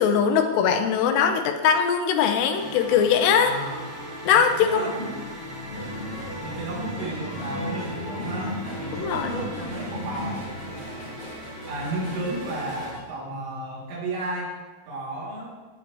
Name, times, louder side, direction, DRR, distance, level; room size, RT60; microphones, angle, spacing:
voice 1, 0.0-3.5 4.3-4.9 8.9-9.3, left 7 dB, 80° left, 6 dB, 2.9 m, -21 dB
sound 1, 2.5-12.9, equal, 55° right, 0.5 m, -38 dB
voice 2, 3.3-4.0 4.3-5.1 6.4-11.3 11.7-14.5 14.9-15.6, right 1 dB, 90° right, -5 dB, 4.8 m, -33 dB
sound 2, 5.7-13.0, equal, 45° left, 4.4 m, -36 dB
14.5 x 8.4 x 3.0 m, 1.3 s
omnidirectional pair, 4.8 m